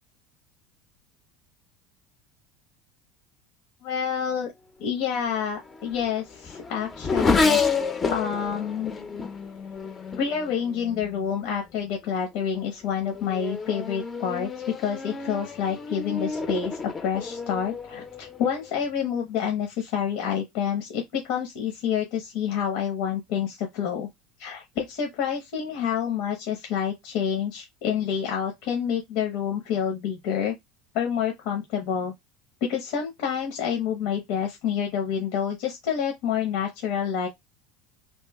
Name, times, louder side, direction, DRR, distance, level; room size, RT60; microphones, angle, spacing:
voice 1, 3.8-4.5 4.8-7.6 8.1-8.9 10.2-24.1 24.4-30.5 30.9-32.1 32.6-37.3, left 8 dB, 70° left, 0.9 m, -28 dB
Race car auto racing / Accelerating revving vroom, 5.4-11.3 12.1-12.4 12.9-18.8, left 4 dB, 20° left, 0.6 m, -30 dB
3.1 x 2.5 x 3.5 m
supercardioid pair, 140°, 0 cm